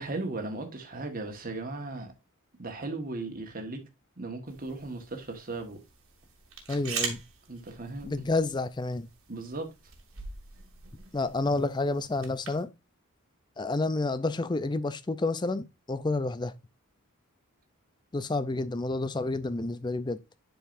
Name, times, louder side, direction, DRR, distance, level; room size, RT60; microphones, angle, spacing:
voice 1, 0.0-2.1 2.6-3.8 4.2-5.8 7.5-8.2 9.3-9.7, right 2 dB, 40° right, 1.4 m, -37 dB
sound 1, 4.5-12.6, right 6 dB, 65° right, 2.0 m, -42 dB
voice 2, 6.7-7.2 8.0-9.1 11.1-12.7 13.6-16.5 18.1-20.2, left 2 dB, 20° left, 0.4 m, -29 dB
10.5 x 4.7 x 2.6 m
head